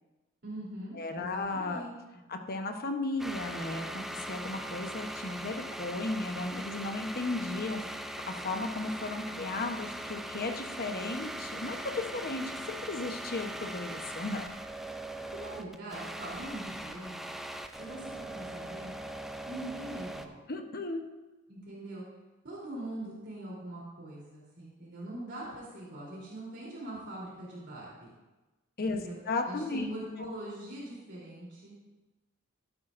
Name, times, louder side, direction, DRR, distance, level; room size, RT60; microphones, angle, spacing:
voice 1, 0.4-1.9 15.3-17.3 17.8-18.9 19.5-20.4 21.5-22.0 22.4-28.1 28.9-29.1 29.5-31.7, right 1 dB, 55° right, -5 dB, 3.5 m, -42 dB
voice 2, 0.9-1.8 2.3-7.9 8.3-14.4 20.5-21.0 28.8-29.9 30.2-30.3, left 2 dB, 45° left, 5 dB, 1.0 m, -35 dB
sound 1, 3.2-20.3, right 1 dB, ahead, 0.5 m, -40 dB
13.5 x 12.0 x 2.6 m, 1.1 s
head